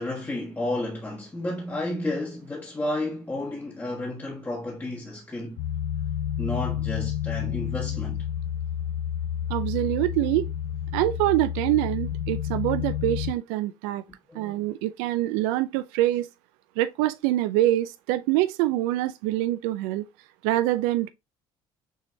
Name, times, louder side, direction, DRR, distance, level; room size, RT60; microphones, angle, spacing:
voice 1, 0.0-5.6 6.4-8.2 14.3-14.7, left 1 dB, 15° left, 1.4 m, -32 dB
sound 1, 5.6-13.3, left 10 dB, 75° left, 0.4 m, -30 dB
voice 2, 9.5-10.5 10.9-14.0 14.3-16.3 16.8-20.0 20.4-21.1, right 15 dB, 90° right, 0.4 m, -25 dB
6.3 x 3.1 x 2.7 m
supercardioid pair, 90°, 11 cm